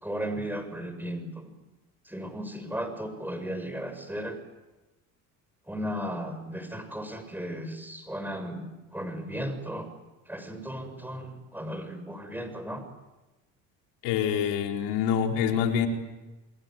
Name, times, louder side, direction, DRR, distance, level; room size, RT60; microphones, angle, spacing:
voice 1, 0.0-1.5 2.1-4.4 5.7-8.7 8.9-9.9 10.3-12.8, equal, 5° right, 9 dB, 7.0 m, -35 dB
voice 2, 14.0-15.9, left 8 dB, 75° left, 3 dB, 4.5 m, -26 dB
29.5 x 21.0 x 9.4 m, 1.1 s
supercardioid pair, 85°, 40 cm